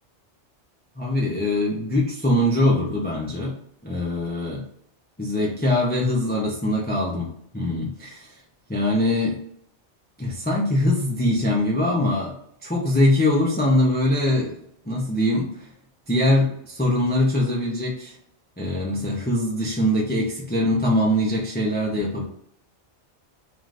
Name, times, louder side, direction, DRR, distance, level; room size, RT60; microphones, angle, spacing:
voice 1, 1.0-3.5 3.8-4.6 5.2-7.3 7.5-8.3 8.7-9.4 10.2-12.3 12.6-14.6 14.9-15.5 16.1-18.1 18.6-22.2, left 1 dB, 15° left, -2 dB, 0.4 m, -22 dB
2.5 x 2.5 x 3.2 m, 0.68 s
omnidirectional pair, 1.2 m